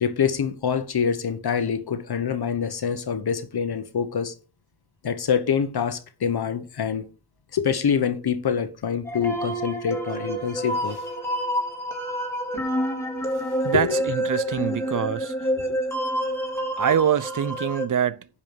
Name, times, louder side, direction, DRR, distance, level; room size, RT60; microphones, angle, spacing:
voice 1, 0.0-4.3 5.0-7.1 7.5-11.0 13.5-14.0 15.6-15.8, left 7 dB, 65° left, 1.1 m, -25 dB
sound 1, 9.0-17.8, equal, 5° left, 2.9 m, -28 dB
voice 2, 13.6-15.5 16.8-18.3, right 8 dB, 50° right, 0.5 m, -25 dB
10.5 x 5.6 x 4.7 m
wide cardioid pair, 110°, 41 cm